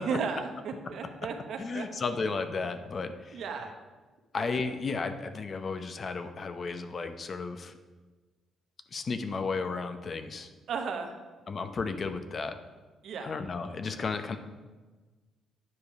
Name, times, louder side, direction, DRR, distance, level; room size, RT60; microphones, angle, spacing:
voice 1, 0.0-1.9 3.3-3.7 10.7-11.1 13.0-13.3, right 5 dB, 70° right, 4 dB, 1.0 m, -34 dB
voice 2, 1.6-3.4 4.3-7.7 8.9-10.5 11.5-12.6 13.2-14.4, left 4 dB, 40° left, 9 dB, 0.6 m, -33 dB
9.6 x 5.1 x 4.7 m, 1.3 s
cardioid pair, 90°, 0 cm